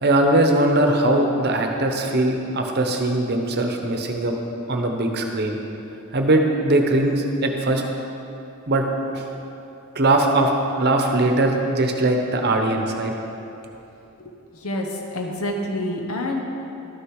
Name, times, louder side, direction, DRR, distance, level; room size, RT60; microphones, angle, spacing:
voice 1, 0.0-4.3 4.7-5.6 6.1-7.8 8.7-8.9 9.1-9.2 9.9-13.1, right 1 dB, 50° right, 3 dB, 0.9 m, -20 dB
voice 2, 14.2-16.4, left 1 dB, 85° left, 2 dB, 1.0 m, -28 dB
12.5 x 6.7 x 4.8 m, 2.9 s
head